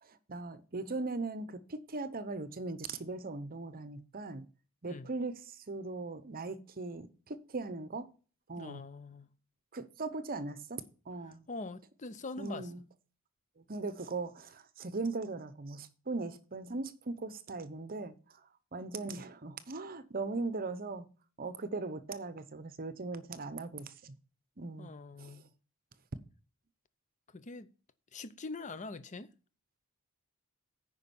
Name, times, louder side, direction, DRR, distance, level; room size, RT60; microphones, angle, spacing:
voice 1, 0.0-4.5 4.8-8.1 8.5-8.8 9.7-11.4 12.4-12.8 13.6-21.1 21.4-24.2 24.6-24.9 25.2-25.4, right 3 dB, 40° right, 0.9 m, -39 dB
voice 2, 8.6-9.3 11.5-12.7 24.8-25.5 27.3-27.7 28.1-29.3, left 3 dB, 35° left, 0.6 m, -43 dB
9.6 x 5.3 x 7.0 m
head